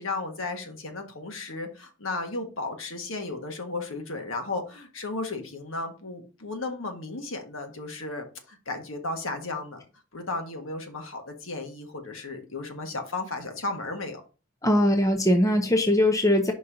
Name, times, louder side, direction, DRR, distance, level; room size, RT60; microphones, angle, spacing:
voice 1, 0.0-9.8 10.1-14.2, left 3 dB, 65° left, 1.4 m, -34 dB
voice 2, 14.6-16.5, left 1 dB, 15° left, 0.6 m, -21 dB
5.4 x 4.2 x 5.0 m
head